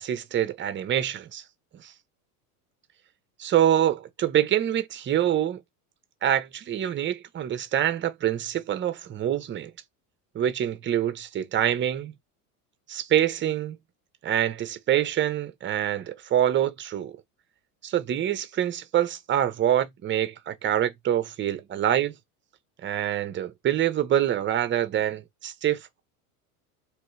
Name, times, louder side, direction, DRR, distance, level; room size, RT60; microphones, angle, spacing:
voice 1, 0.0-1.4 1.8-1.9 3.4-5.6 6.2-9.7 10.3-12.1 12.9-13.8 14.2-17.1 17.8-22.1 22.8-26.0, right 11 dB, 25° right, 0.6 m, -25 dB
3.1 x 2.4 x 3.1 m
supercardioid pair, 105°, 46 cm